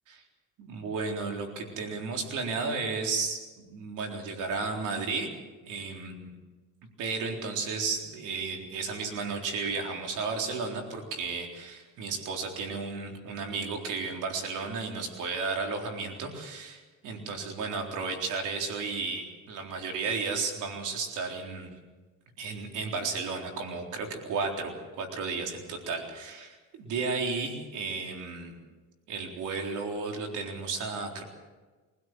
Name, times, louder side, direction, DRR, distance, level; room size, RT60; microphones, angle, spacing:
voice 1, 0.6-5.3 5.6-6.3 7.0-21.7 22.4-28.5 29.1-31.2, right 4 dB, 85° right, 2 dB, 4.0 m, -33 dB
24.0 x 16.0 x 7.7 m, 1.3 s
cardioid pair, 90°, 30 cm